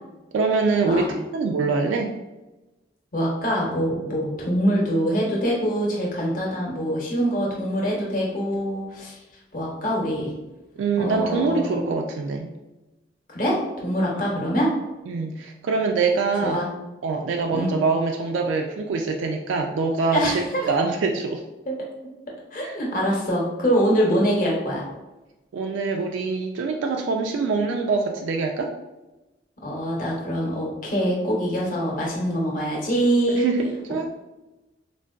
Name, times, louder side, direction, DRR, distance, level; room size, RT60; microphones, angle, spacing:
voice 1, 0.3-2.1 10.8-12.5 15.1-16.6 17.0-21.4 22.6-22.8 25.5-28.7 32.3-32.4 33.3-34.1, right 4 dB, 85° right, 2 dB, 0.3 m, -24 dB
voice 2, 3.1-9.1 9.5-10.3 11.0-11.7 13.3-14.7 16.4-16.7 17.5-17.8 20.1-20.7 21.7-21.8 22.5-24.8 29.6-33.4, equal, 45° left, -3 dB, 0.8 m, -24 dB
3.8 x 2.2 x 2.3 m, 1.0 s
head